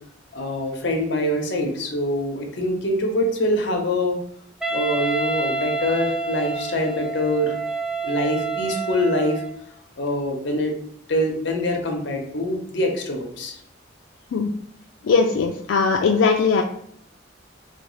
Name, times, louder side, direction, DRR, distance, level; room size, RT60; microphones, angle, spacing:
voice 1, 0.3-4.2 4.7-7.5 8.0-9.4 10.0-10.7 11.1-13.6, left 1 dB, 65° left, 2 dB, 0.8 m, -24 dB
Wind instrument woodwind instrument, 4.6-9.6, right 4 dB, 5° right, 0.4 m, -28 dB
voice 2, 15.1-16.6, left 5 dB, 85° left, 2 dB, 0.3 m, -19 dB
4.2 x 2.3 x 3.1 m, 0.68 s
head